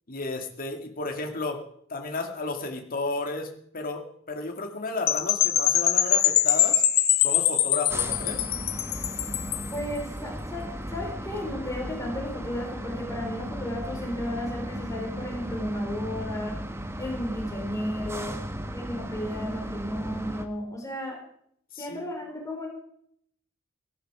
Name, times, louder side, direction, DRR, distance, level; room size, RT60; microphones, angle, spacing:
voice 1, 0.1-1.6 1.9-3.5 3.7-6.8 7.2-8.5 18.1-18.4 21.7-22.0, left 3 dB, 45° left, 3 dB, 2.3 m, -33 dB
Percussion / Wind chime, 5.1-9.8, left 12 dB, 90° left, 1.3 m, -23 dB
sound 1, 7.9-20.5, equal, 15° right, 1.2 m, -36 dB
voice 2, 9.7-16.6 17.0-18.4 18.7-21.2 21.8-22.7, left 1 dB, 15° left, 0 dB, 4.7 m, -34 dB
17.0 x 14.5 x 4.9 m, 0.68 s
head